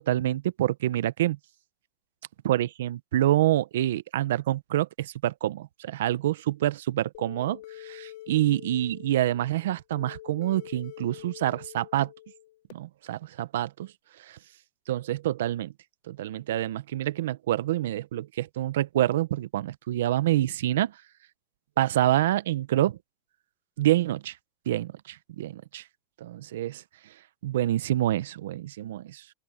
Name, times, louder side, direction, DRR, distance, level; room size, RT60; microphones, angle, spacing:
voice 1, 0.0-1.4 2.4-12.1 12.7-13.9 14.3-14.4 14.9-15.7 16.1-20.9 21.8-23.0 23.8-24.3 24.7-25.8 26.2-26.8 27.4-29.2, right 13 dB, 80° right, 0.8 m, -27 dB
sound 1, 7.1-12.7, left 15 dB, 60° left, 3.9 m, -46 dB
open air
supercardioid pair, 115°, 0 cm